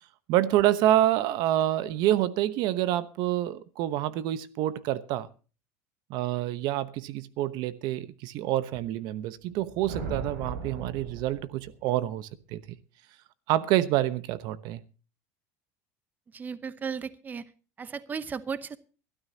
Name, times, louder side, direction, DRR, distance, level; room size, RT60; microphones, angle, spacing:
voice 1, 0.3-5.3 6.1-12.6 13.5-14.8, right 13 dB, 60° right, 1.0 m, -27 dB
sound 1, 9.4-12.0, right 4 dB, 75° right, 7.6 m, -38 dB
voice 2, 16.3-17.4 17.8-18.8, right 6 dB, 20° right, 0.9 m, -35 dB
22.0 x 12.5 x 2.8 m
supercardioid pair, 130°, 8 cm